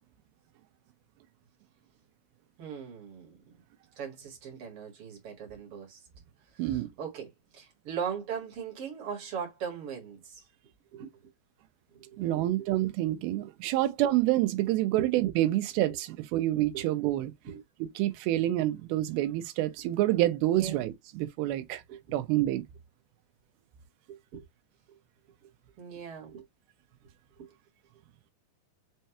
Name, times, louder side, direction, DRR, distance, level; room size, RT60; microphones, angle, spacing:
voice 1, 2.6-3.4 4.0-6.0 6.5-10.4 10.9-11.1 11.9-12.7 15.0-15.1 16.3-16.4 16.7-16.8 17.4-17.6 20.5-20.8 21.9-22.0 24.1-24.4 25.8-26.4 27.4-27.5, right 7 dB, 60° right, 1.5 m, -39 dB
voice 2, 12.2-17.3 17.8-21.8 22.1-22.6, right 15 dB, 80° right, 2.3 m, -27 dB
6.3 x 2.2 x 2.8 m
omnidirectional pair, 4.9 m